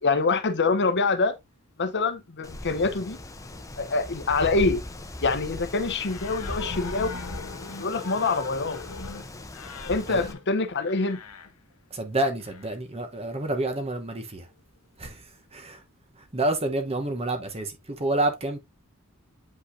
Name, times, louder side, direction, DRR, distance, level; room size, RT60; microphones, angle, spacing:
voice 1, 0.0-1.4 1.8-3.2 3.8-4.8 5.2-7.1 7.8-8.8 9.9-11.2, left 3 dB, 55° left, 0.9 m, -25 dB
Wind, 2.4-10.3, left 1 dB, 15° left, 0.8 m, -38 dB
sound 1, 5.8-11.5 12.4-12.8, left 4 dB, 85° left, 0.9 m, -40 dB
voice 2, 11.9-14.5 15.0-15.8 16.2-18.6, right 2 dB, 30° right, 1.1 m, -29 dB
8.3 x 5.3 x 2.7 m
head